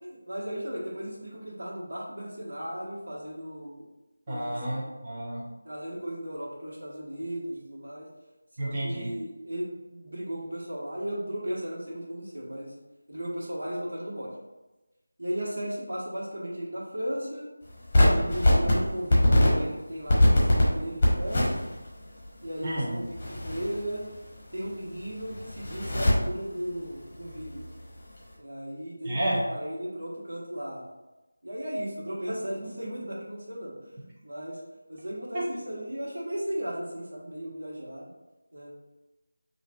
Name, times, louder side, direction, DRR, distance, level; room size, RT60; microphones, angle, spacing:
voice 1, 0.0-3.9 4.3-4.8 5.6-8.1 8.5-12.7 13.1-14.3 15.2-17.4 18.1-21.5 22.4-24.0 24.5-27.6 28.4-30.9 31.4-33.7 34.2-34.6 34.9-38.1 38.5-38.7, equal, 55° right, -5 dB, 1.4 m, -36 dB
voice 2, 4.3-5.5 8.6-9.1 22.6-22.9 29.0-29.4 35.3-35.4, right 1 dB, 20° right, -6 dB, 0.8 m, -30 dB
sound 1, 17.9-18.7 19.1-19.5 20.1-20.6 21.0-21.9 22.2-22.3 23.1-24.4 24.6-24.7 25.0-26.1 27.3-27.8, left 1 dB, 25° left, 1.1 m, -22 dB
5.8 x 2.6 x 2.4 m, 1.1 s
figure-of-eight pair, 165°, 0 cm